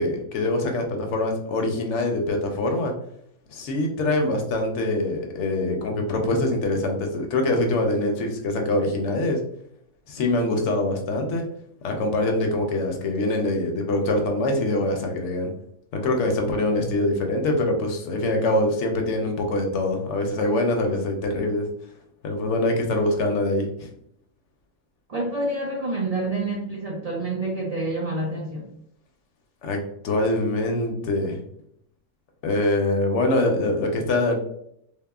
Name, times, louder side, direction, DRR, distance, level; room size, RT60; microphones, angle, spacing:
voice 1, 0.0-2.9 3.5-9.4 10.1-11.4 11.8-15.5 15.9-21.7 22.2-23.9 29.6-29.8 30.0-31.4 32.4-34.4, left 2 dB, 70° left, 3 dB, 0.9 m, -24 dB
voice 2, 25.1-28.7, right 2 dB, 85° right, -2 dB, 0.3 m, -28 dB
3.4 x 2.0 x 2.2 m, 0.72 s
omnidirectional pair, 1.3 m